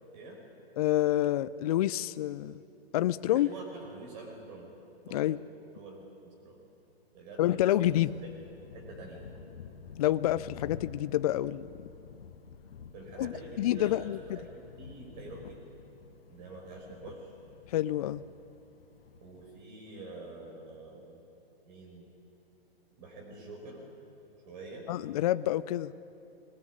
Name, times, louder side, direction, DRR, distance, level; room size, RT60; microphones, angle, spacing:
voice 1, 0.8-2.6 2.9-3.5 5.1-5.4 7.4-8.1 10.0-11.7 13.2-14.4 17.7-18.2 24.9-25.9, left 13 dB, 40° left, 16 dB, 0.5 m, -28 dB
voice 2, 3.3-4.7 5.1-5.3 5.7-6.6 7.1-8.3 8.7-9.4 12.9-15.6 16.3-17.3 19.2-21.2 21.7-22.1 23.0-23.9 24.5-24.9, right 2 dB, 45° right, -1 dB, 5.1 m, -46 dB
sound 1, 7.8-19.6, left 6 dB, 65° left, 1.4 m, -50 dB
20.5 x 20.5 x 9.6 m, 2.9 s
figure-of-eight pair, 125°, 31 cm